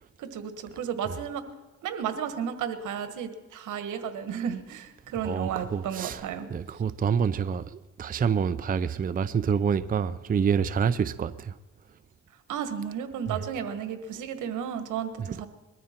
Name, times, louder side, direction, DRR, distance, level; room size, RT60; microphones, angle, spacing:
voice 1, 0.2-1.4 1.8-6.5 12.5-15.5, right 8 dB, 80° right, 1.5 m, -33 dB
voice 2, 5.2-6.2 6.5-11.5 13.3-13.4, right 7 dB, 30° right, 0.5 m, -27 dB
21.5 x 13.5 x 4.4 m
cardioid pair, 90°, 30 cm